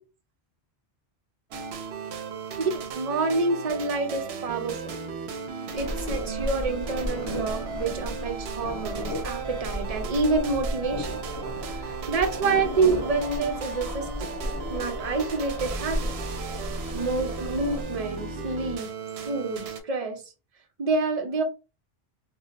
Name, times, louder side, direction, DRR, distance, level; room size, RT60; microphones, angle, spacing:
sound 1, 1.5-19.8, right 5 dB, 80° right, 0.8 m, -36 dB
voice 1, 2.6-5.0 5.7-11.2 11.7-14.3 14.7-16.1 16.9-18.9 19.2-20.2 20.8-21.4, right 3 dB, 45° right, 5 dB, 0.6 m, -28 dB
sound 2, 5.7-17.8, left 1 dB, 25° left, 0.6 m, -35 dB
2.6 x 2.0 x 3.9 m, 0.31 s
omnidirectional pair, 1.1 m